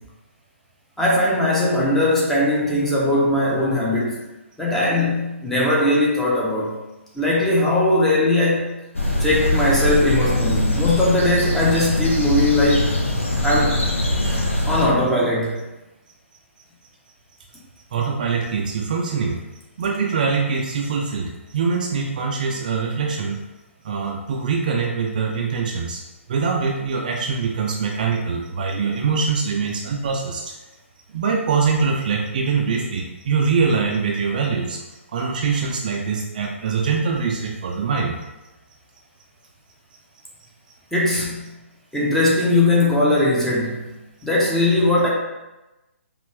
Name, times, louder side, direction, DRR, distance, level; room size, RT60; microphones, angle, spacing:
voice 1, 1.0-4.3 4.6-6.8 7.1-8.7 9.2-12.8 13.4-13.8 14.7-15.6 40.9-41.4 41.9-43.8 44.2-45.1, left 1 dB, 5° left, -6 dB, 0.7 m, -19 dB
sound 1, 8.9-14.9, left 1 dB, 70° left, 1.0 m, -22 dB
voice 2, 17.9-19.4 19.8-23.4 23.8-26.0 26.3-30.5 31.1-34.8 35.1-38.1 41.1-41.2, right 5 dB, 35° right, 0 dB, 0.4 m, -23 dB
5.1 x 2.4 x 3.2 m, 1.0 s
figure-of-eight pair, 135°, 7 cm